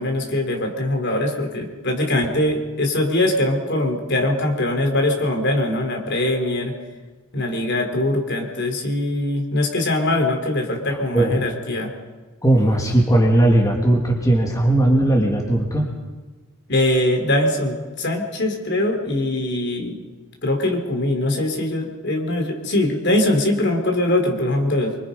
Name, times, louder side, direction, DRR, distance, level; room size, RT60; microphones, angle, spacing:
voice 1, 0.0-6.7 7.3-11.9 16.7-20.1 20.4-25.0, left 1 dB, 55° left, 3 dB, 3.5 m, -22 dB
voice 2, 12.4-15.9, right 1 dB, 15° left, 1 dB, 2.8 m, -17 dB
26.0 x 24.5 x 5.4 m, 1.3 s
head